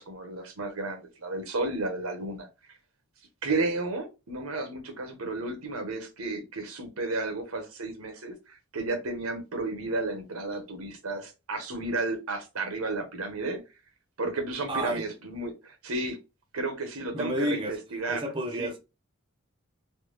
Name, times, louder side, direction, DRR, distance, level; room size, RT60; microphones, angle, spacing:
voice 1, 0.0-2.5 3.4-13.6 14.2-16.2 16.5-18.2 18.6-18.7, right 2 dB, 90° right, 1.0 m, -32 dB
voice 2, 14.7-15.0 17.1-17.7 18.1-18.8, equal, 25° right, 0.7 m, -30 dB
3.3 x 2.3 x 3.2 m
head